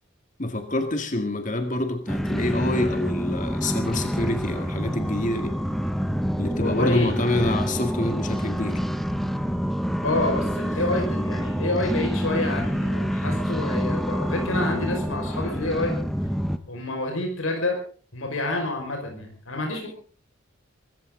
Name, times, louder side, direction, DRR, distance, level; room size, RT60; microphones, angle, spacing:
voice 1, 0.4-5.6 6.4-8.8, left 1 dB, 40° left, 6 dB, 2.0 m, -27 dB
sound 1, 2.1-16.6, equal, ahead, 1.0 m, -27 dB
voice 2, 6.6-7.1 10.0-15.9 16.7-17.8 18.1-19.9, left 2 dB, 90° left, 2 dB, 5.4 m, -28 dB
23.5 x 15.0 x 3.9 m, 0.41 s
head